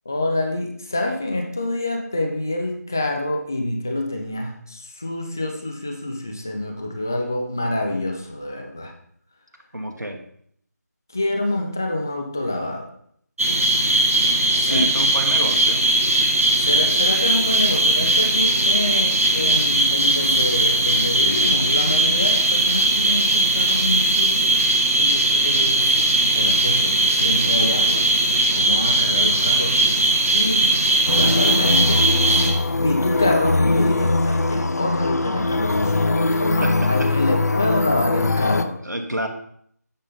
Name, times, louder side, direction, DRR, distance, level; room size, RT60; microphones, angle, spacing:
voice 1, 0.1-8.9 11.1-12.9 14.6-14.9 16.6-26.0 26.3-28.0 28.5-30.7 31.2-32.1 32.7-38.7, left 1 dB, 10° left, 2 dB, 0.3 m, -27 dB
voice 2, 9.7-10.2 14.7-15.8 36.6-37.1 38.8-39.3, right 1 dB, 90° right, 4 dB, 1.2 m, -28 dB
sound 1, 13.4-32.5, right 2 dB, 50° right, 1.7 m, -19 dB
sound 2, 31.1-38.6, left 2 dB, 65° left, 0.5 m, -21 dB
8.7 x 5.4 x 3.7 m, 0.64 s
figure-of-eight pair, 165°, 9 cm